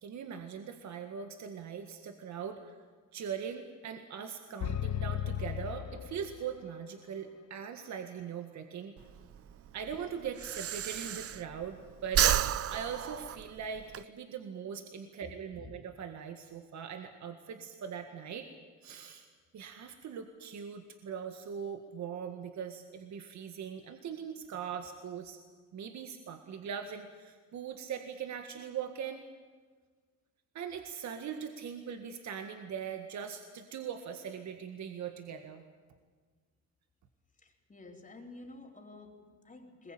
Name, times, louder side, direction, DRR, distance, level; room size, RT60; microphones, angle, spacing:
voice 1, 0.0-2.8 3.1-9.0 9.7-12.2 12.7-18.5 18.8-19.3 19.5-25.4 25.7-29.3 30.5-35.6, right 7 dB, 65° right, 6 dB, 1.9 m, -41 dB
sound 1, 4.6-6.7, left 10 dB, 70° left, 1.3 m, -36 dB
Breathing, 9.0-11.7 12.0-14.0, right 10 dB, 50° right, 0.7 m, -31 dB
voice 2, 37.4-39.9, left 2 dB, 25° left, 1 dB, 3.9 m, -50 dB
21.5 x 21.0 x 8.9 m, 1.5 s
cardioid pair, 90°, 30 cm